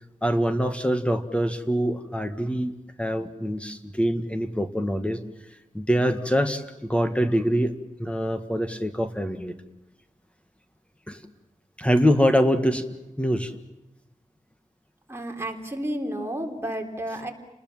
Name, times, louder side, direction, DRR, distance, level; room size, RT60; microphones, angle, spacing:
voice 1, 0.2-5.2 5.7-7.7 8.0-9.5 11.1-11.2 11.8-12.8 13.2-13.5, equal, 10° left, 8 dB, 1.7 m, -24 dB
voice 2, 15.1-17.3, right 1 dB, 20° right, 2 dB, 3.5 m, -31 dB
29.5 x 20.5 x 7.3 m, 0.98 s
wide cardioid pair, 100°, 14 cm